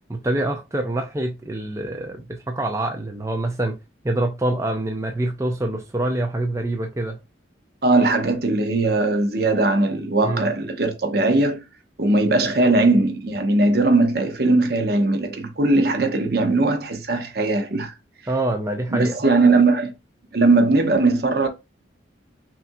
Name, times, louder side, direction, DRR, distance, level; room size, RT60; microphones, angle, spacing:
voice 1, 0.1-3.8 4.0-7.2 10.2-10.5 18.3-19.1, right 1 dB, 15° right, 0.5 m, -25 dB
voice 2, 7.8-11.6 12.0-17.9 18.9-19.9 20.3-21.5, right 2 dB, 55° right, 0.8 m, -19 dB
5.8 x 2.4 x 2.6 m
head